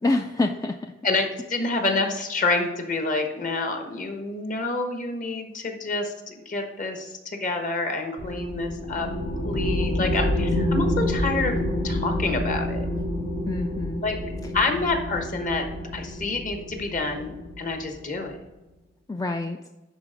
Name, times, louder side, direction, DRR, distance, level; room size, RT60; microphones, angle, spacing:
voice 1, 0.0-0.9 10.0-10.4 13.5-14.0 19.1-19.6, left 2 dB, 15° left, 5 dB, 0.3 m, -27 dB
voice 2, 1.0-9.1 9.4-11.6 11.8-12.9 14.0-14.1 14.5-15.7 15.9-18.4, left 3 dB, 45° left, 4 dB, 1.2 m, -28 dB
sound 1, 8.2-18.2, left 1 dB, 80° left, 1.6 m, -28 dB
11.0 x 4.2 x 3.9 m, 1.0 s
head